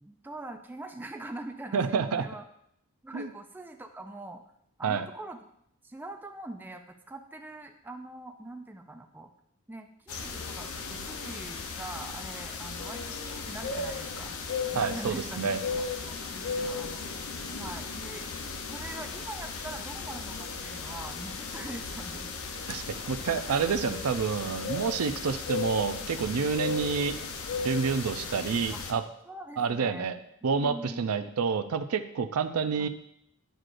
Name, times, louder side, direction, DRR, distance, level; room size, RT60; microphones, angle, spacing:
voice 1, 0.0-2.4 3.0-4.4 4.8-5.4 5.8-9.3 9.7-14.4 14.7-17.0 17.6-18.3 18.6-22.3 22.9-23.5 26.7-26.9 28.7-28.8 29.3-30.1 30.6-31.0 32.8-32.9, right 2 dB, 10° right, 5 dB, 0.3 m, -43 dB
voice 2, 1.7-2.2 3.1-3.3 4.8-5.0 14.7-15.6 22.7-27.1 27.6-29.0 29.6-30.2 30.4-32.9, right 5 dB, 80° right, 10 dB, 0.5 m, -28 dB
sound 1, 10.1-28.9, left 4 dB, 75° left, 0.7 m, -36 dB
9.0 x 6.4 x 2.5 m, 0.75 s
head